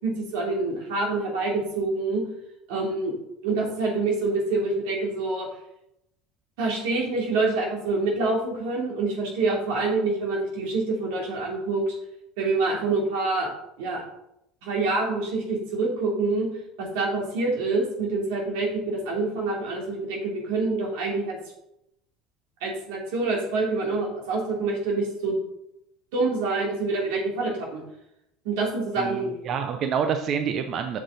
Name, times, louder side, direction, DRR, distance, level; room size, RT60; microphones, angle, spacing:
voice 1, 0.0-2.2 2.7-3.1 3.4-5.5 6.6-11.9 12.4-13.5 13.8-14.0 14.6-16.5 16.8-21.4 22.6-25.4 26.1-27.8 28.4-29.3, right 3 dB, 80° right, -1 dB, 3.0 m, -26 dB
voice 2, 29.0-31.0, right 7 dB, 40° right, 7 dB, 0.5 m, -27 dB
7.8 x 6.8 x 4.0 m, 0.83 s
cardioid pair, 155°, 0 cm